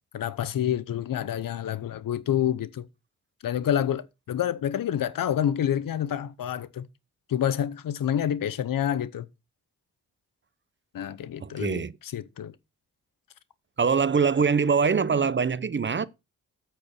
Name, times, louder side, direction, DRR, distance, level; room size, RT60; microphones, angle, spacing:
voice 1, 0.1-2.9 3.4-6.9 7.3-9.3 10.9-12.5, left 10 dB, 75° left, 0.8 m, -28 dB
voice 2, 11.4-11.9 13.8-16.1, right 5 dB, 35° right, 0.7 m, -23 dB
8.5 x 4.6 x 6.3 m
cardioid pair, 50°, 34 cm